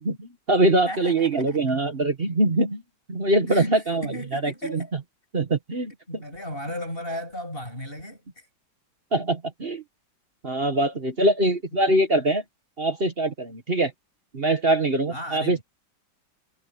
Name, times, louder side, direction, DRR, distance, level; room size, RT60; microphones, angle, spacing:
voice 1, 0.0-2.8 3.1-4.8 5.3-6.2 9.1-9.8 10.4-12.4 12.8-13.9 14.3-15.6, right 2 dB, 35° right, 1.5 m, -23 dB
voice 2, 0.9-1.6 3.5-4.9 6.1-8.5 11.4-11.5 15.1-15.6, equal, 30° left, 7.9 m, -35 dB
omnidirectional pair, 2.0 m